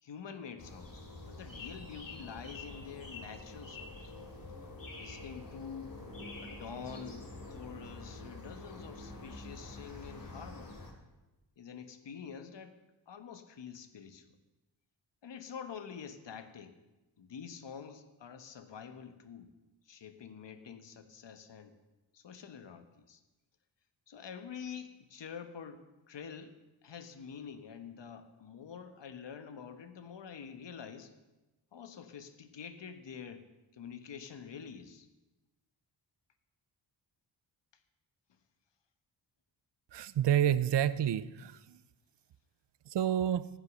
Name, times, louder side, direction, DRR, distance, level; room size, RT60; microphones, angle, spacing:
voice 1, 0.0-4.1 4.9-5.9 6.4-10.8 11.6-12.7 13.1-14.3 15.2-16.7 17.2-19.5 19.8-21.8 22.1-23.2 24.1-26.6 26.8-31.1 31.7-33.5 33.7-35.1, left 7 dB, 65° left, 9 dB, 1.4 m, -47 dB
sound 1, 0.6-10.9, left 2 dB, 45° left, 3.1 m, -47 dB
voice 2, 39.9-41.8 42.9-43.5, right 10 dB, 60° right, 16 dB, 0.7 m, -29 dB
14.5 x 10.5 x 6.5 m, 1.1 s
cardioid pair, 80°, 46 cm